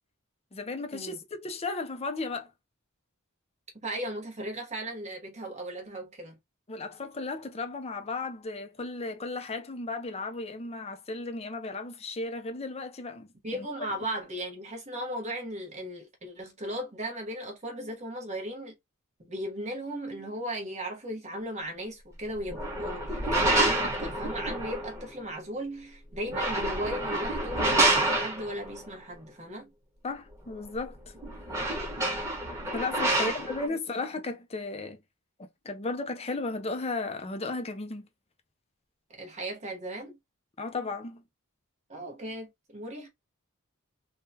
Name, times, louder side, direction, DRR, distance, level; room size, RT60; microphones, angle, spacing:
voice 1, 0.5-2.5 6.7-13.7 30.0-31.1 31.6-31.7 32.7-35.0 35.6-38.1 40.6-41.2, left 3 dB, 30° left, 0.6 m, -35 dB
voice 2, 3.8-6.4 13.4-18.7 19.2-29.7 33.1-33.3 39.1-40.2 41.9-43.1, right 1 dB, 35° right, 1.1 m, -37 dB
sound 1, 22.4-25.0 26.1-28.8 30.8-30.9 31.1-33.7, right 1 dB, 15° right, 1.4 m, -28 dB
3.7 x 2.3 x 2.7 m
head